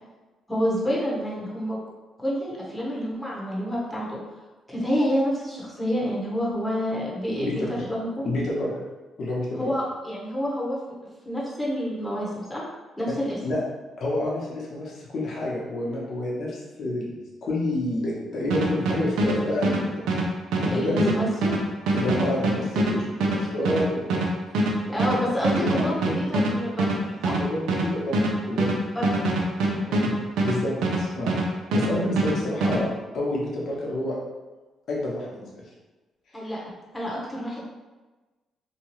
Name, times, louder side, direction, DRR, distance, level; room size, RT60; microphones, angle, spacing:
voice 1, 0.5-1.8 2.2-4.2 4.7-8.2 9.6-10.8 11.2-12.6 13.0-13.4 20.7-21.5 24.8-27.4 28.9-29.3 29.7-29.8 36.3-37.6, equal, 5° left, -6 dB, 1.0 m, -28 dB
voice 2, 7.4-7.8 8.2-8.7 9.2-9.7 13.1-13.2 13.4-13.6 14.0-20.0 20.6-21.2 21.9-24.2 25.6-26.2 27.4-28.2 28.4-28.7 29.9-30.1 30.4-32.9 33.1-34.2 34.9-35.6, left 1 dB, 60° left, -4 dB, 0.9 m, -29 dB
sound 1, 18.5-31.5 31.7-32.8, right 2 dB, 85° right, 0.4 m, -24 dB
2.9 x 2.3 x 3.0 m, 1.2 s
cardioid pair, 90°, 0 cm